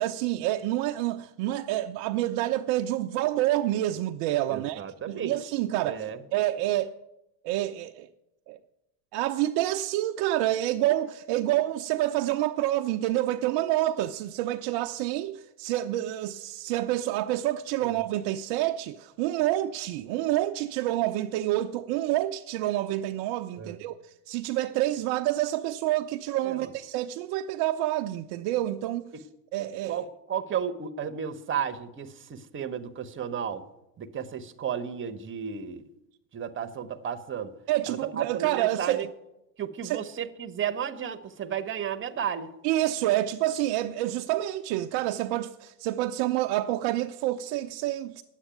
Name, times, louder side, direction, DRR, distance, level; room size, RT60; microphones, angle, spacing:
voice 1, 0.0-7.0 7.4-8.1 8.5-8.6 9.1-29.1 29.5-30.0 37.7-39.1 39.8-40.0 42.6-48.2, right 14 dB, 50° right, 0.6 m, -28 dB
voice 2, 4.5-5.4 5.8-6.2 23.6-23.8 26.4-26.7 29.8-33.6 34.0-35.9 36.3-37.5 37.9-39.1 39.6-42.5, right 8 dB, 25° right, 1.0 m, -33 dB
9.9 x 8.1 x 9.0 m
hypercardioid pair, 95°, 48 cm